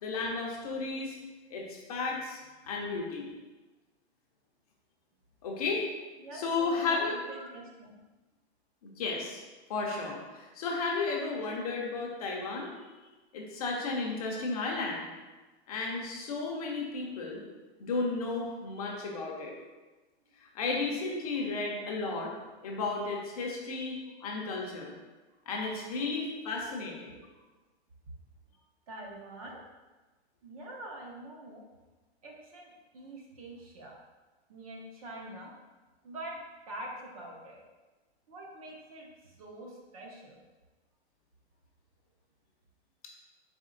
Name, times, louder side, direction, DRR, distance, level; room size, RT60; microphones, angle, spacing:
voice 1, 0.0-1.2 1.5-2.4 2.7-3.3 5.4-5.8 6.3-7.1 8.8-9.4 9.7-12.7 13.3-15.1 15.7-17.4 17.8-19.5 20.4-22.3 22.6-24.9 25.5-27.1, left 3 dB, 35° left, -1 dB, 0.6 m, -33 dB
voice 2, 6.2-8.0 12.4-12.5 23.5-23.6 25.8-26.1 28.9-29.6 30.4-31.6 32.2-34.0 34.5-35.5 36.0-37.6 38.3-40.4, right 1 dB, 35° right, -1 dB, 0.6 m, -45 dB
4.3 x 3.0 x 3.7 m, 1.2 s
hypercardioid pair, 170°, 33 cm